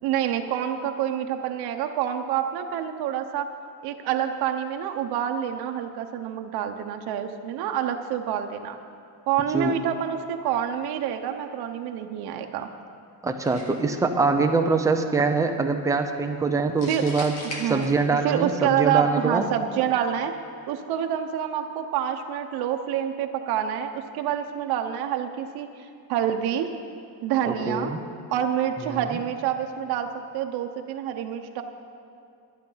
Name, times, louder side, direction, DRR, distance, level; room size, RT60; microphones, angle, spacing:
voice 1, 0.0-3.5 3.8-8.8 9.3-12.7 16.9-17.0 17.6-17.9 18.2-20.3 20.7-26.7 27.2-27.9 28.3-31.6, right 9 dB, 90° right, 5 dB, 0.8 m, -27 dB
voice 2, 13.2-17.3 17.7-19.5 27.5-28.0 28.9-29.0, right 4 dB, 10° right, 4 dB, 0.5 m, -24 dB
sound 1, 13.4-14.0 16.8-18.4, left 1 dB, 45° left, 2.0 m, -38 dB
11.5 x 10.5 x 5.6 m, 2.5 s
cardioid pair, 175°, 37 cm